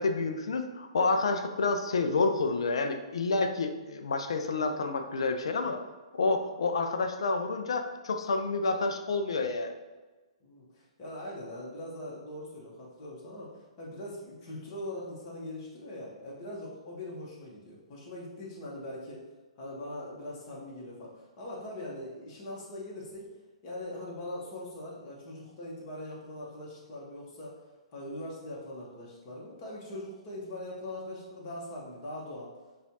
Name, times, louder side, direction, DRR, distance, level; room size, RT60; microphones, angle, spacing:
voice 1, 0.0-5.8 6.1-9.7, left 3 dB, 60° left, 6 dB, 0.4 m, -29 dB
voice 2, 10.4-19.2 19.6-23.3 23.6-27.6 27.9-32.5, left 1 dB, 30° left, -4 dB, 1.2 m, -41 dB
6.8 x 2.4 x 2.7 m, 1.2 s
figure-of-eight pair, 120°, 3 cm